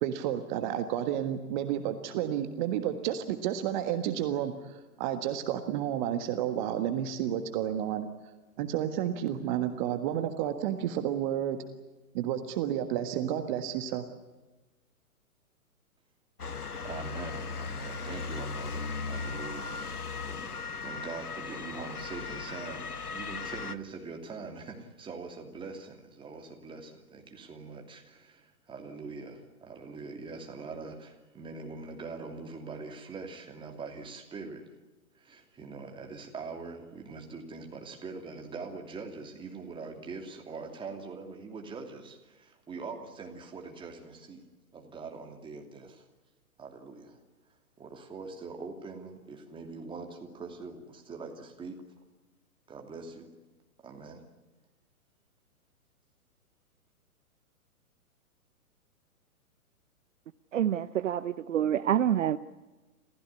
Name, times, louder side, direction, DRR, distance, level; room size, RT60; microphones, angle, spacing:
voice 1, 0.0-8.1 8.6-11.6 12.1-14.0, right 10 dB, 30° right, 8 dB, 1.6 m, -31 dB
Motor vehicle (road) / Siren, 16.4-23.8, left 4 dB, 90° left, 1.2 m, -37 dB
voice 2, 16.8-22.9 23.1-34.6 35.1-44.4 44.7-46.1 46.6-47.2 47.8-51.8 52.7-53.3 53.8-54.2, right 4 dB, 10° right, 3 dB, 2.8 m, -43 dB
voice 3, 60.5-62.4, right 10 dB, 55° right, 14 dB, 0.8 m, -27 dB
26.5 x 16.0 x 9.7 m, 1.2 s
figure-of-eight pair, 125°, 44 cm